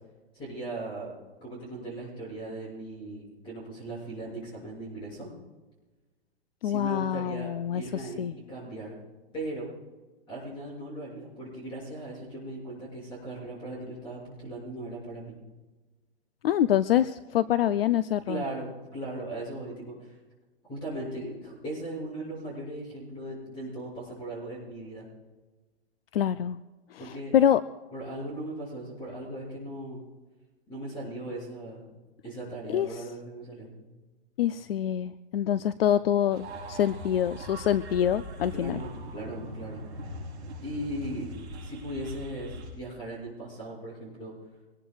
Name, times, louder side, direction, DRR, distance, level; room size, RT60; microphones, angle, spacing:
voice 1, 0.3-1.1 1.4-5.3 6.6-8.2 8.5-8.9 9.3-9.7 10.3-15.3 18.3-20.1 20.7-25.1 27.0-27.4 27.9-30.0 30.7-31.9 32.2-33.7 38.5-40.1 40.6-41.3 41.6-44.3, right 1 dB, 15° left, -4 dB, 6.5 m, -38 dB
voice 2, 6.6-8.3 16.4-18.4 26.1-26.6 26.9-27.6 32.7-33.0 34.4-38.8, left 10 dB, 60° left, 13 dB, 0.5 m, -26 dB
sound 1, 36.3-42.7, equal, 15° right, 6.2 m, -41 dB
24.5 x 19.0 x 2.4 m, 1.2 s
hypercardioid pair, 175°, 33 cm